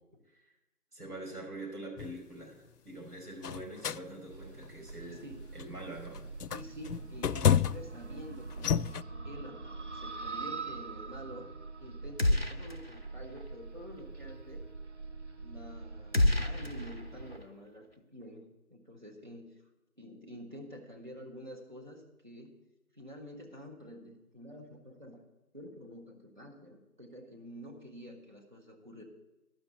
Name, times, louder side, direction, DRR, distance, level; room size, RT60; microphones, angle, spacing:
voice 1, 0.9-5.2 5.5-6.2, right 1 dB, 75° right, -1 dB, 5.5 m, -44 dB
sound 1, 2.0-2.2 3.4-4.0 4.6-4.9 5.6-5.8 6.1-8.0 8.5-9.0, left 8 dB, 85° left, 0.5 m, -29 dB
sound 2, 4.3-17.4, right 3 dB, 50° right, 0.6 m, -44 dB
voice 2, 5.1-5.4 6.5-8.8 9.2-11.5 11.8-14.6 15.4-19.5 20.0-22.6 22.9-25.2 25.5-29.0, equal, 30° right, 0 dB, 1.2 m, -48 dB
sound 3, 12.2-13.1 13.4-13.5 16.1-17.4, left 1 dB, 40° left, 0.6 m, -29 dB
12.0 x 6.2 x 8.5 m, 0.99 s
figure-of-eight pair, 170°, 45 cm